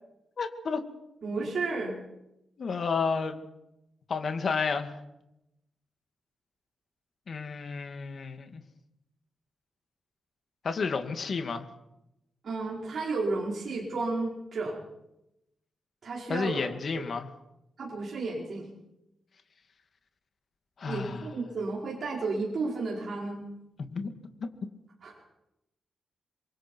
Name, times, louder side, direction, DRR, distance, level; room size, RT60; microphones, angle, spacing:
voice 1, 0.4-0.9 1.7-1.8 2.6-3.4 4.1-5.0 7.3-8.6 10.6-11.7 16.3-17.3 20.8-21.3 23.9-24.1 24.4-24.5, left 5 dB, 50° left, 6 dB, 2.3 m, -31 dB
voice 2, 1.2-1.9 12.4-14.8 16.0-17.0 17.8-18.7 20.9-23.4 25.0-25.1, right 3 dB, 55° right, -4 dB, 5.3 m, -32 dB
28.0 x 23.5 x 4.7 m, 0.86 s
wide cardioid pair, 135°, 0 cm